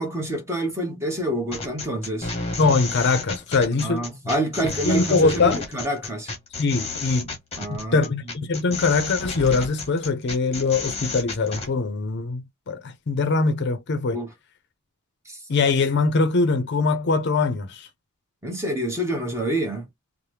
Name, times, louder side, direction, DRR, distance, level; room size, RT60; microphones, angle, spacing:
voice 1, 0.0-2.3 3.8-6.3 7.6-8.1 14.1-14.3 15.3-15.4 18.4-19.9, right 1 dB, 15° right, 0.9 m, -27 dB
sound 1, 1.5-11.7, left 3 dB, 30° left, 0.8 m, -32 dB
voice 2, 2.6-4.1 4.8-5.6 6.6-7.3 7.7-14.2 15.5-17.9, left 4 dB, 50° left, 0.5 m, -22 dB
2.8 x 2.1 x 3.3 m
head